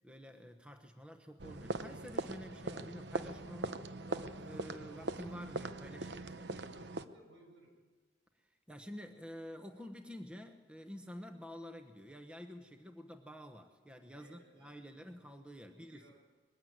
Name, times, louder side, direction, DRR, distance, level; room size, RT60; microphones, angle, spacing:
voice 1, 0.0-6.7 8.4-16.0, equal, 5° right, 5 dB, 1.0 m, -50 dB
sound 1, 1.4-7.1, right 3 dB, 65° right, 0.8 m, -41 dB
voice 2, 6.7-7.8 14.1-14.7 15.8-16.1, right 1 dB, 80° right, 2 dB, 6.6 m, -61 dB
21.5 x 15.5 x 9.6 m, 1.4 s
head